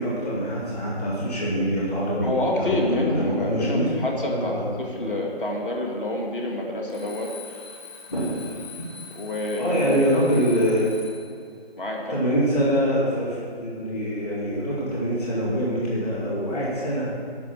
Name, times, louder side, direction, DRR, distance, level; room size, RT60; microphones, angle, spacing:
voice 1, 0.0-3.9 4.3-4.6 4.9-5.1 8.1-8.8 9.6-10.9 12.1-17.1, equal, 40° left, -6 dB, 2.4 m, -25 dB
voice 2, 2.2-7.3 9.2-9.9 11.8-12.2 16.6-16.7, left 1 dB, 55° left, 0 dB, 2.0 m, -27 dB
Alarm, 6.9-11.3, left 6 dB, 20° left, 2.7 m, -43 dB
11.0 x 6.2 x 7.1 m, 2.2 s
figure-of-eight pair, 160°, 31 cm